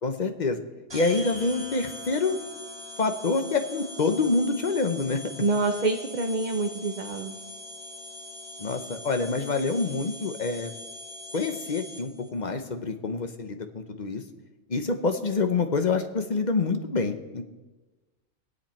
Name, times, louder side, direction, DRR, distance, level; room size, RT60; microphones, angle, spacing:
voice 1, 0.0-0.6 0.9-2.4 3.0-5.2 8.6-10.7 11.3-14.2 14.7-17.4, left 3 dB, 40° left, 7 dB, 1.0 m, -27 dB
sound 1, 0.9-12.3, left 1 dB, 20° right, 2.6 m, -42 dB
voice 2, 5.4-7.4, right 3 dB, 40° right, 3 dB, 0.9 m, -26 dB
22.0 x 7.9 x 4.4 m, 1.2 s
omnidirectional pair, 1.3 m